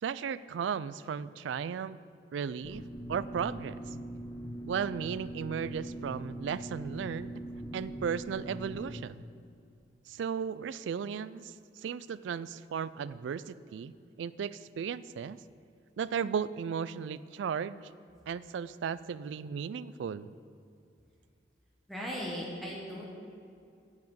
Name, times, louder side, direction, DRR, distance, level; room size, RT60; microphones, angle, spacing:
voice 1, 0.0-2.0 2.3-3.8 4.7-7.4 7.7-9.2 10.1-15.4 16.0-17.8 18.3-20.3, right 7 dB, 75° right, 17 dB, 0.3 m, -35 dB
sound 1, 2.6-9.0, right 1 dB, 15° left, 0.6 m, -41 dB
voice 2, 21.9-23.1, equal, ahead, -5 dB, 1.2 m, -37 dB
7.5 x 7.3 x 7.9 m, 2.4 s
head